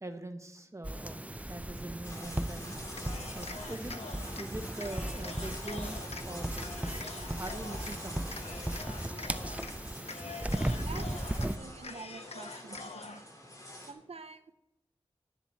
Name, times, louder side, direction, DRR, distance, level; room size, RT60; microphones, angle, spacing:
voice 1, 0.0-2.8 3.3-6.6 7.4-8.4, right 2 dB, 30° right, 7 dB, 1.2 m, -43 dB
sound 1, 0.8-11.6, right 1 dB, 15° right, 0.5 m, -37 dB
sound 2, 2.0-13.9, left 1 dB, 35° left, 2.3 m, -47 dB
Cheering, 2.9-4.5 4.8-6.2 6.6-8.0 8.3-9.7 10.0-11.5 11.8-13.2, left 4 dB, 90° left, 0.7 m, -45 dB
voice 2, 10.2-11.1 11.4-13.3 13.8-14.5, right 4 dB, 75° right, 8 dB, 0.5 m, -48 dB
10.0 x 9.9 x 4.5 m, 0.86 s
wide cardioid pair, 50°, 10 cm